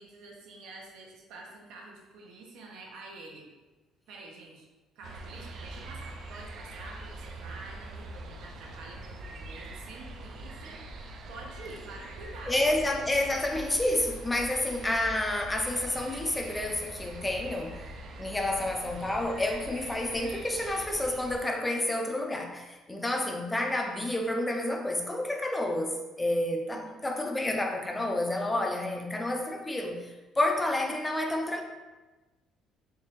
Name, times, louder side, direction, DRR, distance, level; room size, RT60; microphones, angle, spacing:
voice 1, 0.0-3.4 4.1-4.7 4.9-10.8 11.3-12.5 26.7-27.1, right 2 dB, 85° right, -1 dB, 0.8 m, -47 dB
sound 1, 5.0-21.4, right 2 dB, 55° right, 0.4 m, -43 dB
voice 2, 12.5-17.8 18.2-31.6, left 1 dB, 10° left, 2 dB, 0.4 m, -29 dB
3.5 x 3.1 x 3.0 m, 1.2 s
cardioid pair, 125°, 0 cm